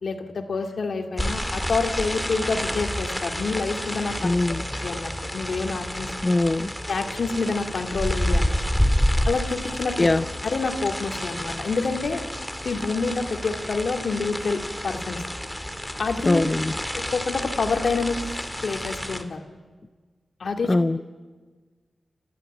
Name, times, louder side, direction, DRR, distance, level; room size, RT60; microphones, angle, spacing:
voice 1, 0.0-4.3 4.8-6.1 6.9-8.6 9.2-10.1 10.4-12.2 12.6-15.2 16.0-16.4 16.9-18.3 18.6-19.4 20.4-20.8, left 4 dB, 70° left, 4 dB, 2.2 m, -27 dB
sound 1, 1.2-19.2, equal, 10° left, 2.2 m, -29 dB
voice 2, 4.2-4.6 6.2-6.7 10.0-10.2 16.3-16.7 20.7-21.1, left 2 dB, 35° left, 11 dB, 0.6 m, -21 dB
29.5 x 12.5 x 9.2 m, 1.4 s
cardioid pair, 40°, 0 cm